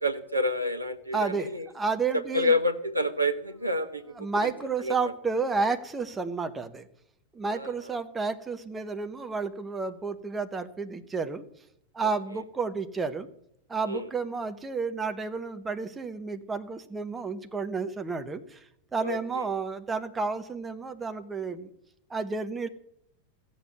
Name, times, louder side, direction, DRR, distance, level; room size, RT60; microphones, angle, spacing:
voice 1, 0.0-1.6 2.3-4.0 4.8-5.0 7.5-7.7 12.0-12.1 13.9-14.0 19.0-19.4, left 1 dB, 85° right, 8 dB, 1.0 m, -28 dB
voice 2, 1.1-2.5 4.2-6.9 7.3-11.4 11.9-13.3 13.7-18.7 18.9-21.7 22.1-22.7, right 4 dB, 15° right, 8 dB, 0.9 m, -31 dB
15.0 x 7.1 x 7.8 m, 0.77 s
figure-of-eight pair, 90°, 0 cm